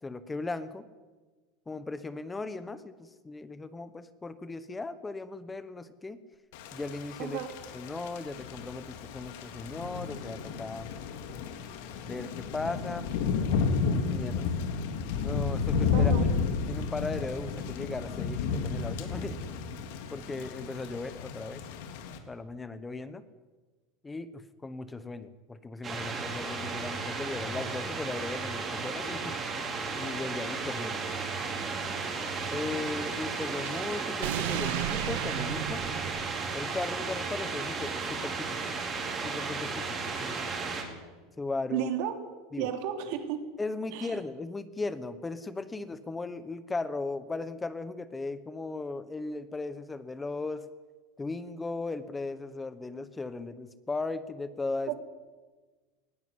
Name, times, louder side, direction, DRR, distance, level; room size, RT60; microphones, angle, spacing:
voice 1, 0.0-0.9 1.7-6.2 6.7-7.4 7.7-10.9 12.0-13.1 14.1-14.5 15.2-16.1 16.7-19.5 20.1-21.6 22.3-23.2 24.0-29.4 29.9-31.0 32.5-35.8 36.5-38.7 39.1-40.5 41.4-41.9 42.5-42.7 43.6-50.7 51.2-54.9, left 3 dB, 10° left, 13 dB, 1.0 m, -37 dB
Thunder / Rain, 6.5-22.2, left 5 dB, 70° left, 2.9 m, -32 dB
voice 2, 15.9-16.3 41.7-42.1 42.6-43.4 43.9-44.1 54.9-55.0, right 10 dB, 60° right, 6 dB, 3.2 m, -32 dB
sound 1, 25.8-40.8, right 4 dB, 25° right, 4.6 m, -34 dB
sound 2, 32.2-37.0, right 14 dB, 80° right, 0.7 m, -36 dB
19.5 x 17.0 x 9.6 m, 1.3 s
supercardioid pair, 150°, 0 cm